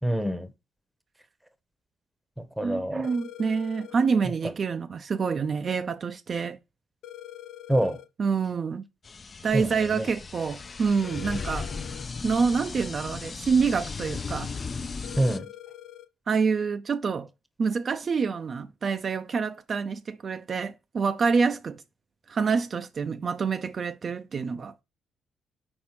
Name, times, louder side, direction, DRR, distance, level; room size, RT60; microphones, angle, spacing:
voice 1, 0.0-0.5 2.4-3.1 7.7-8.0 9.5-10.1 15.2-15.5, right 1 dB, ahead, 0.8 m, -26 dB
voice 2, 2.6-6.6 8.2-8.8 9.4-11.7 12.2-14.5 16.3-17.3 17.6-21.8 22.3-24.8, right 5 dB, 45° right, 0.3 m, -27 dB
sound 1, 3.0-4.1 7.0-8.1 11.0-12.1 15.0-16.1, left 13 dB, 80° left, 0.6 m, -44 dB
sound 2, 9.0-15.4, left 4 dB, 35° left, 0.4 m, -36 dB
4.3 x 4.2 x 5.7 m
cardioid pair, 90°, 0 cm